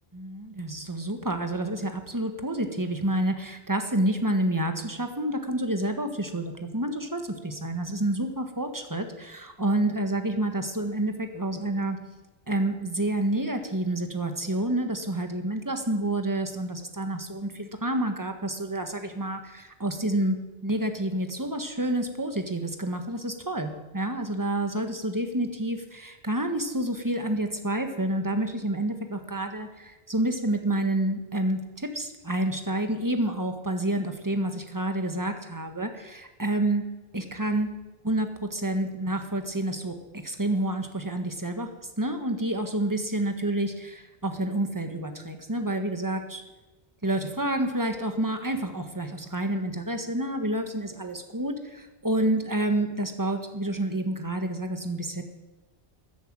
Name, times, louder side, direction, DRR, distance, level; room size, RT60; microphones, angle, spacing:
voice 1, 0.1-12.0 12.5-20.4 20.6-36.8 37.1-37.7 38.0-41.7 42.0-46.4 47.0-55.2, right 1 dB, 15° right, 6 dB, 1.6 m, -29 dB
14.5 x 10.5 x 8.9 m, 1.1 s
omnidirectional pair, 1.1 m